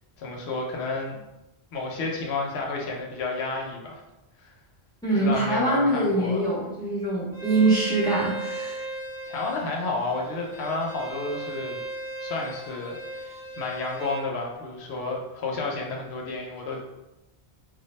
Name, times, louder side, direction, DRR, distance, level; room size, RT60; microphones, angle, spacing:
voice 1, 0.2-1.2 1.7-4.0 4.4-4.5 5.1-6.5 9.3-11.8 12.2-16.8, left 3 dB, 80° left, -1 dB, 0.8 m, -31 dB
voice 2, 5.0-8.8, right 2 dB, 5° left, -8 dB, 0.6 m, -24 dB
Bowed string instrument, 7.3-14.3, right 2 dB, 50° left, 0.5 m, -37 dB
2.2 x 2.0 x 3.0 m, 0.98 s
omnidirectional pair, 1.1 m